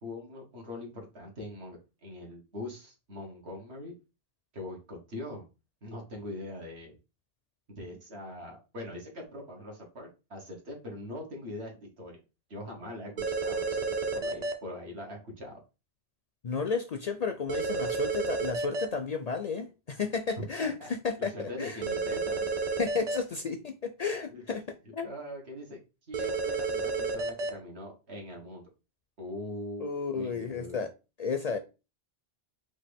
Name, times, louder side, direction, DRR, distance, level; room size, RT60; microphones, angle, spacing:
voice 1, 0.0-3.9 4.5-5.4 5.8-7.0 7.7-12.2 12.5-15.6 20.6-20.9 21.2-22.7 24.3-24.4 25.0-25.8 26.1-28.7 29.2-30.8, left 1 dB, 80° right, 1.7 m, -42 dB
sound 1, 13.2-14.5 17.5-18.9 21.8-23.2 26.1-27.5, right 4 dB, 45° right, 0.7 m, -31 dB
voice 2, 16.4-21.3 21.6-21.8 22.8-24.6 24.9-25.1 29.8-30.9 31.2-31.6, left 5 dB, 55° left, 0.5 m, -32 dB
5.2 x 2.6 x 3.4 m
omnidirectional pair, 1.1 m